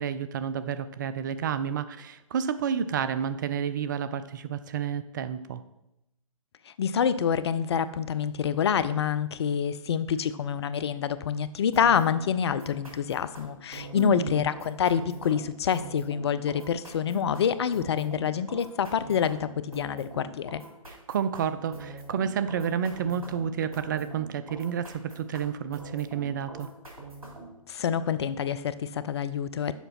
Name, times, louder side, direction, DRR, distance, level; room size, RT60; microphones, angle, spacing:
voice 1, 0.0-5.6 14.0-14.4 21.1-26.7, right 8 dB, 35° right, 13 dB, 0.4 m, -30 dB
voice 2, 6.7-20.6 27.7-29.7, left 8 dB, 50° left, 14 dB, 0.4 m, -27 dB
sound 1, 11.7-27.6, right 2 dB, 80° right, 3.4 m, -44 dB
7.1 x 5.0 x 5.7 m, 0.88 s
figure-of-eight pair, 130°, 18 cm